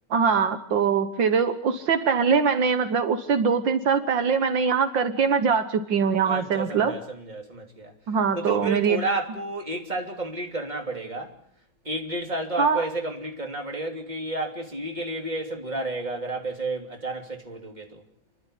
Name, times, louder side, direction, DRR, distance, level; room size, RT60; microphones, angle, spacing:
voice 1, 0.1-7.0 8.1-9.0 12.6-12.8, right 6 dB, 75° right, 1.9 m, -22 dB
voice 2, 6.2-7.9 8.3-11.3 11.8-18.0, right 2 dB, 20° right, 3.2 m, -31 dB
29.5 x 12.0 x 9.9 m
omnidirectional pair, 2.0 m